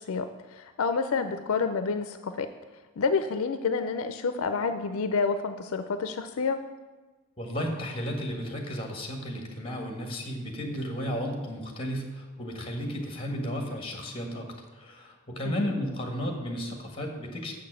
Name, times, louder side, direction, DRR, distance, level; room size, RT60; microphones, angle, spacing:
voice 1, 0.0-2.5 3.0-6.6 15.4-15.7, left 4 dB, 70° left, 9 dB, 0.5 m, -29 dB
voice 2, 7.4-17.5, equal, 25° left, 2 dB, 1.5 m, -33 dB
7.3 x 5.9 x 7.5 m, 1.3 s
head